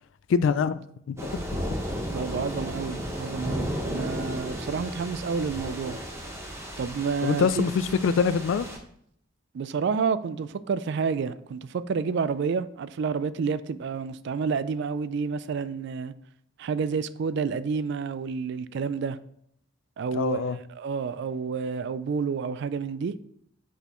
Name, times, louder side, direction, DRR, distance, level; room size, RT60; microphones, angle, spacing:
voice 1, 0.3-0.8 1.1-1.4 7.2-8.7 20.1-20.6, left 6 dB, 65° left, 0.3 m, -24 dB
sound 1, 1.2-8.8, equal, 15° right, 0.9 m, -34 dB
voice 2, 2.1-6.0 6.8-7.7 9.5-16.1 16.6-19.2 20.0-20.4 20.8-23.1, right 5 dB, 60° right, 0.3 m, -29 dB
6.2 x 5.5 x 3.0 m
head